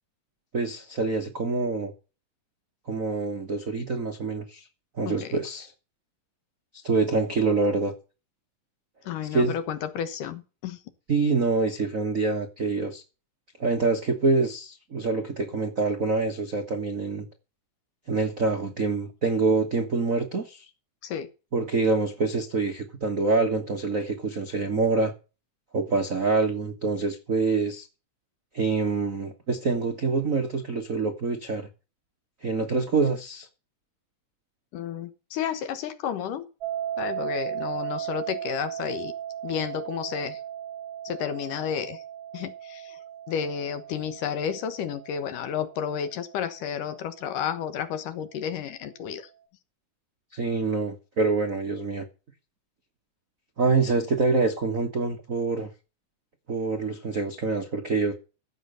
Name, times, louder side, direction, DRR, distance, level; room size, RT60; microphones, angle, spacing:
voice 1, 0.5-1.9 2.9-4.7 5.0-5.7 6.7-7.9 9.3-9.6 11.1-13.0 13.6-17.3 18.1-20.6 21.5-25.1 25.7-27.9 28.5-31.7 32.4-33.5 50.3-52.0 53.6-55.7 56.5-58.1, right 3 dB, 65° right, 0.8 m, -26 dB
voice 2, 5.1-5.4 9.1-10.8 21.0-21.3 34.7-36.5 37.0-39.1 39.4-40.4 41.0-42.0 42.3-43.0 43.3-49.3, left 8 dB, 70° left, 2.8 m, -31 dB
sound 1, 36.6-47.5, right 10 dB, 45° right, 4.4 m, -37 dB
16.0 x 7.1 x 5.6 m
omnidirectional pair, 3.9 m